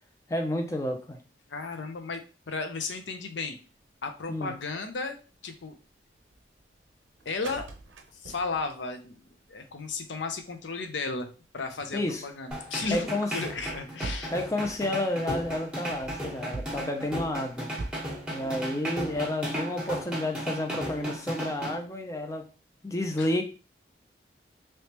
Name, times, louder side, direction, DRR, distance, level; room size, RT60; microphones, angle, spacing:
voice 1, 0.3-1.2 4.3-4.5 11.9-12.2 12.9-13.4 14.3-17.7 18.3-22.5 22.8-23.4, left 1 dB, 15° left, 4 dB, 0.4 m, -30 dB
voice 2, 1.5-3.6 4.0-5.2 5.4-5.8 7.2-7.7 8.1-9.2 9.5-11.3 11.5-14.3 23.2-23.3, left 4 dB, 80° left, 7 dB, 0.6 m, -34 dB
sound 1, 3.7-4.2 4.5-4.7 5.1-5.6 6.2-8.9 9.4-9.9 10.2-10.6 11.4-11.5 11.8-18.7 19.0-19.3 19.8-20.0 20.8-21.1, right 2 dB, 85° right, 0.5 m, -42 dB
sound 2, 12.5-21.7, equal, 5° right, 1.1 m, -35 dB
3.2 x 3.1 x 2.9 m, 0.34 s
head